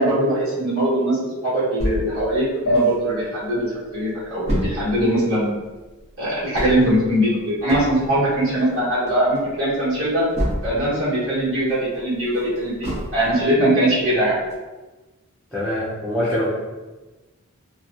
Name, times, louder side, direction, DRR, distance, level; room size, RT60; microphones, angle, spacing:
voice 1, 0.0-5.5 6.2-10.3 10.6-14.4, right 1 dB, 70° right, -9 dB, 1.2 m, -21 dB
sound 1, 1.8-3.3 3.7-3.8 4.0-11.0 11.4-13.5 14.0-14.1 14.5-14.6, equal, 30° right, 0.8 m, -29 dB
sound 2, 2.7-5.6, right 1 dB, 65° left, 0.4 m, -26 dB
voice 2, 15.5-16.5, left 1 dB, ahead, -11 dB, 0.5 m, -24 dB
2.8 x 2.2 x 2.5 m, 1.2 s
head